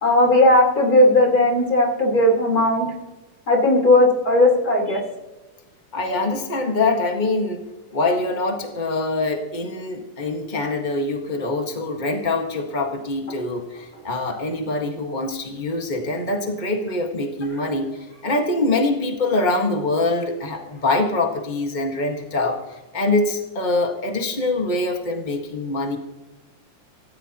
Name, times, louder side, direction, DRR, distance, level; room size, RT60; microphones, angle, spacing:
voice 1, 0.0-2.8 3.5-5.0, left 1 dB, 25° left, 0 dB, 4.1 m, -16 dB
voice 2, 5.9-7.7 7.9-17.9 18.2-26.0, left 2 dB, 45° left, 2 dB, 0.5 m, -24 dB
25.5 x 14.5 x 3.0 m, 1.1 s
omnidirectional pair, 3.8 m